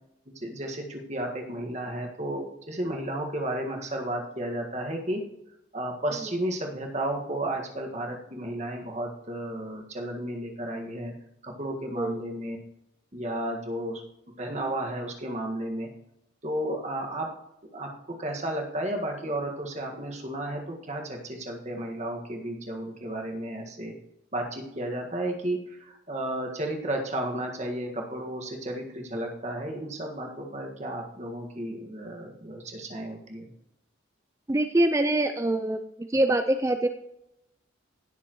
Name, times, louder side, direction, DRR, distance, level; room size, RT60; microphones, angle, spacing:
voice 1, 0.3-5.2 5.7-11.1 11.4-12.6 13.1-14.0 14.4-15.9 16.4-17.3 17.7-24.0 24.3-33.5, right 1 dB, 35° right, 1 dB, 1.7 m, -33 dB
voice 2, 34.5-35.8 36.1-36.9, right 1 dB, 15° right, 7 dB, 0.4 m, -24 dB
17.0 x 7.0 x 3.1 m, 0.83 s
head